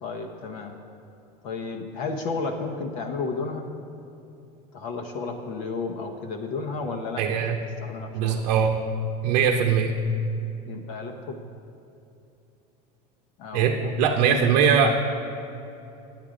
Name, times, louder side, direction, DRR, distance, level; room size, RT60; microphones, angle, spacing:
voice 1, 0.0-0.8 1.4-3.7 4.7-7.5 7.8-8.4 10.7-11.4 13.4-13.9 14.3-14.4, left 4 dB, 60° left, 3 dB, 0.9 m, -32 dB
voice 2, 7.2-7.6 8.1-8.7 9.2-9.9 13.5-15.0, right 7 dB, 85° right, 3 dB, 0.8 m, -21 dB
9.2 x 9.1 x 5.0 m, 2.8 s
supercardioid pair, 150°, 21 cm